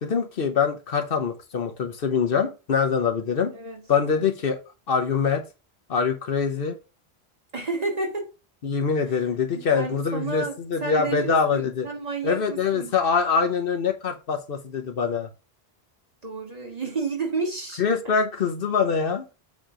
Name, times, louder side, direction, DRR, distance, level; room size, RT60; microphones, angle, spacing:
voice 1, 0.0-3.5 3.9-4.6 4.9-5.4 5.9-6.8 8.6-11.9 12.2-15.3 17.8-19.2, left 6 dB, 65° left, 1.0 m, -24 dB
voice 2, 3.5-3.8 7.5-8.3 9.1-9.2 9.5-12.9 16.2-18.1, right 3 dB, 40° right, 1.7 m, -31 dB
7.3 x 3.0 x 5.0 m
omnidirectional pair, 1.1 m